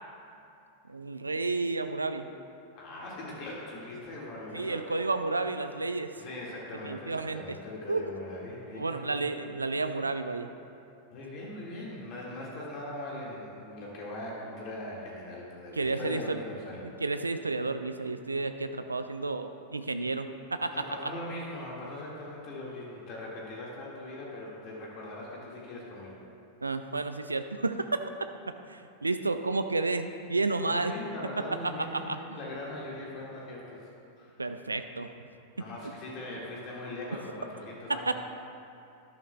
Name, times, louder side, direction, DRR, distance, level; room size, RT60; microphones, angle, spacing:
voice 1, 0.9-2.3 4.5-6.1 6.8-7.6 7.9-8.1 8.8-10.5 15.8-16.4 17.0-20.7 26.6-27.9 28.7-30.9 31.9-32.2 34.4-35.1 38.1-38.2, right 3 dB, 80° right, 9 dB, 0.4 m, -31 dB
voice 2, 2.7-5.1 6.2-9.3 11.1-16.9 20.7-26.2 30.7-33.9 34.2-34.7 35.5-38.1, left 1 dB, 40° left, -4 dB, 1.8 m, -40 dB
13.0 x 11.5 x 2.3 m, 2.6 s
figure-of-eight pair, 90°, 0 cm